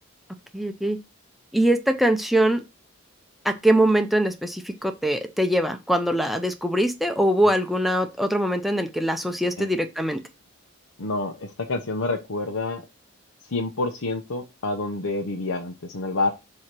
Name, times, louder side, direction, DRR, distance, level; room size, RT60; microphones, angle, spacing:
voice 1, 0.5-1.0 1.5-2.6 3.4-10.2, right 1 dB, ahead, 7 dB, 0.5 m, -22 dB
voice 2, 11.0-12.8 13.5-16.3, left 2 dB, 90° left, 3 dB, 0.9 m, -28 dB
7.7 x 2.8 x 5.9 m, 0.25 s
head